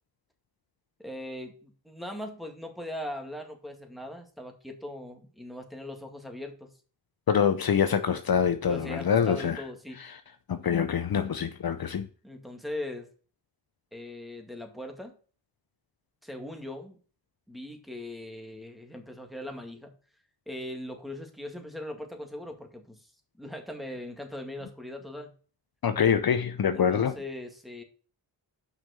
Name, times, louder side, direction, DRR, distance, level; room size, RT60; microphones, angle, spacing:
voice 1, 1.0-6.7 8.7-10.0 12.2-13.1 13.9-15.1 16.2-16.9 17.5-19.9 20.5-23.1 23.4-25.3 26.7-27.8, left 1 dB, ahead, 2.2 m, -40 dB
voice 2, 7.3-9.6 10.0-10.2 10.5-12.1 25.8-27.1, left 7 dB, 55° left, 0.7 m, -25 dB
6.0 x 5.5 x 6.5 m
cardioid pair, 70°, 44 cm